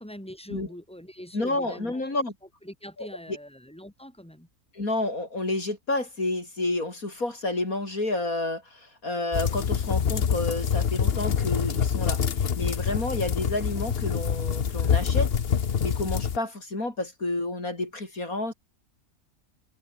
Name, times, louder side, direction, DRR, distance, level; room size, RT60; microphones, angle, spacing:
voice 1, 0.0-2.0 2.6-4.5, equal, 5° left, 8.0 m, -43 dB
voice 2, 1.3-2.3 3.0-3.1 4.7-12.2 12.6-15.3 15.8-18.5, left 2 dB, 70° left, 5.9 m, -30 dB
sound 1, 9.3-16.4, left 7 dB, 45° left, 1.1 m, -26 dB
omnidirectional pair, 1.6 m